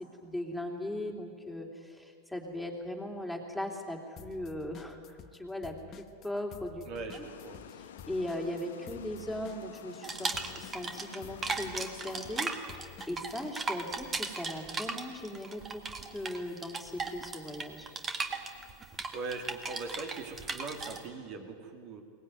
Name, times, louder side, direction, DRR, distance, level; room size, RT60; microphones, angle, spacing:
voice 1, 0.2-5.0 5.3-7.2 7.7-15.8 16.1-17.9, left 1 dB, ahead, 1 dB, 3.3 m, -39 dB
sound 1, 4.2-5.4 5.6-13.5, left 8 dB, 35° left, 1.2 m, -51 dB
voice 2, 6.9-7.7 19.1-22.0, right 3 dB, 50° right, 5 dB, 3.1 m, -41 dB
Water, 7.2-12.6, left 9 dB, 85° left, 1.2 m, -50 dB
sound 2, 10.0-11.2 11.4-21.0, right 4 dB, 20° right, 1.9 m, -37 dB
22.5 x 19.0 x 9.5 m, 2.2 s
supercardioid pair, 125°, 0 cm